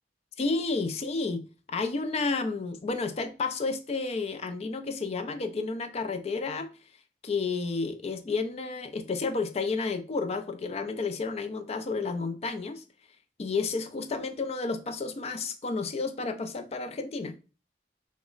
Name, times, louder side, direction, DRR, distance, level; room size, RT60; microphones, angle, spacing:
voice 1, 0.4-1.4 1.7-6.7 7.2-12.8 13.4-17.3, left 4 dB, 35° left, 0.4 m, -31 dB
3.1 x 2.0 x 3.7 m
head